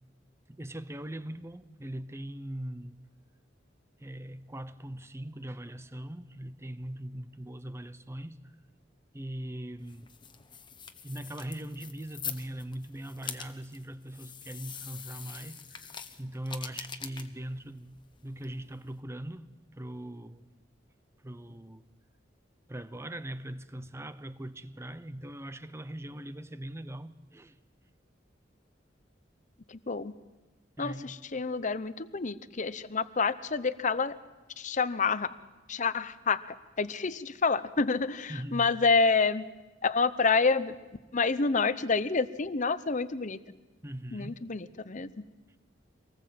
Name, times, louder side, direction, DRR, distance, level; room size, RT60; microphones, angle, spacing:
voice 1, 0.5-3.0 4.0-8.4 9.1-10.1 11.0-20.5 21.2-21.8 22.7-27.5 30.8-31.2 38.3-38.7 43.8-44.5, right 1 dB, 15° right, 0.8 m, -41 dB
sound 1, 9.8-19.0, left 6 dB, 25° left, 1.2 m, -44 dB
voice 2, 29.7-30.1 30.8-34.2 34.6-35.3 35.7-36.4 36.8-39.5 39.8-40.8 41.1-43.4 44.1-45.2, left 4 dB, 40° left, 0.8 m, -28 dB
25.0 x 19.0 x 7.7 m
head